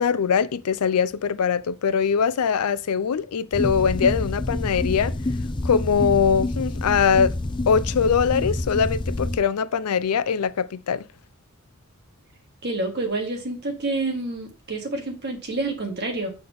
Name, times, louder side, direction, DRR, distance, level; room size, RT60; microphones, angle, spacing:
voice 1, 0.0-5.1 5.6-7.4 7.7-11.0, left 6 dB, 90° left, 0.4 m, -22 dB
sound 1, 3.5-9.4, left 2 dB, 20° left, 0.4 m, -27 dB
voice 2, 12.6-16.3, right 2 dB, 50° right, 1.7 m, -28 dB
7.7 x 3.9 x 3.5 m
head